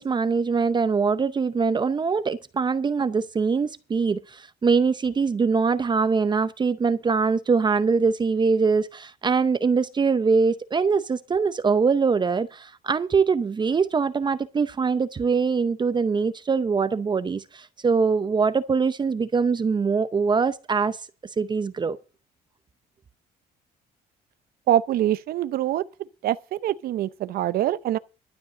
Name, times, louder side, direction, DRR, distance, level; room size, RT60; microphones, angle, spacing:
voice 1, 0.0-21.0 21.4-22.0, right 5 dB, 25° right, 0.7 m, -23 dB
voice 2, 24.7-25.8 26.2-28.0, right 12 dB, 65° right, 0.7 m, -24 dB
12.5 x 5.3 x 8.3 m
cardioid pair, 110°, 17 cm